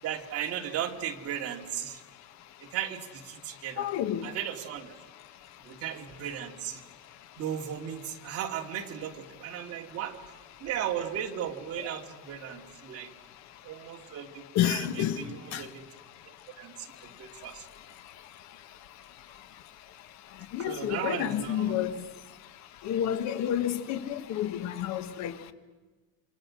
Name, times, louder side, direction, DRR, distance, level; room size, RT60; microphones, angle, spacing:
voice 1, 0.0-2.0 2.6-3.9 4.2-4.9 5.6-6.8 7.4-10.2 10.6-13.1 13.6-15.8 16.3-17.6 20.6-21.8, right 10 dB, 50° right, 2.7 m, -36 dB
voice 2, 3.8-4.3 14.5-15.2 15.5-15.6 20.5-21.9 22.8-25.3, left 11 dB, 65° left, 1.5 m, -29 dB
28.5 x 26.0 x 6.3 m
cardioid pair, 150°, 30 cm